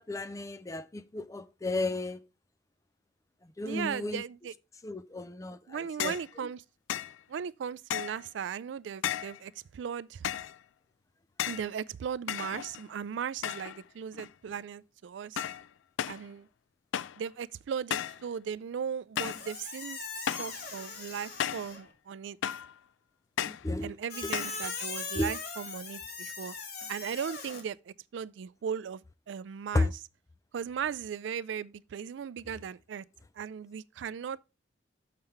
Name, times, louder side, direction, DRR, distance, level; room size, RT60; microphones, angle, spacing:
voice 1, 0.0-2.2 3.6-4.2 4.8-6.2 23.4-23.9 25.2-25.3 29.7-29.9, left 2 dB, 15° left, 0.4 m, -33 dB
voice 2, 3.6-4.5 5.7-6.6 7.3-10.3 11.4-15.4 16.1-16.5 17.2-20.0 20.3-22.4 23.8-26.6 26.9-29.9 30.5-33.0 33.4-34.4, right 7 dB, 75° right, 0.3 m, -37 dB
sound 1, 6.0-6.3 6.9-7.2 7.9-8.3 9.0-9.4 10.2-10.6 11.4-11.7 12.3-12.9 13.4-13.8 14.1-14.6 15.4-15.7 16.0-16.3 16.9-17.2 17.9-18.2 19.2-19.5 20.3-20.6 21.4-21.7 22.4-22.7 23.4-23.7 24.3-24.6, left 10 dB, 85° left, 0.4 m, -34 dB
Squeak, 19.2-21.9 24.1-27.6, left 4 dB, 55° left, 1.6 m, -40 dB
6.7 x 5.6 x 4.3 m
head